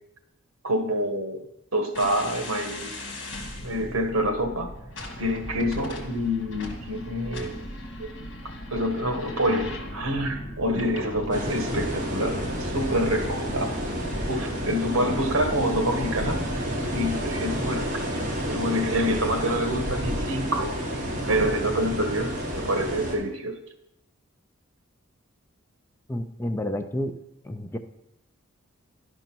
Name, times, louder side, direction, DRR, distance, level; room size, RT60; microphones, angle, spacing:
voice 1, 0.6-1.4 1.7-3.0 3.5-4.7 5.2-7.6 8.0-8.1 8.7-13.8 14.3-16.4 16.9-18.0 18.5-20.7 21.3-23.6, equal, 75° right, 7 dB, 1.3 m, -27 dB
sound 1, 1.9-21.7, left 1 dB, 55° left, 1.8 m, -39 dB
sound 2, 11.3-23.2, equal, 40° right, 2.0 m, -30 dB
voice 2, 26.1-27.2 27.4-27.8, left 1 dB, 10° left, 7 dB, 0.5 m, -30 dB
11.5 x 5.3 x 6.0 m, 0.84 s
head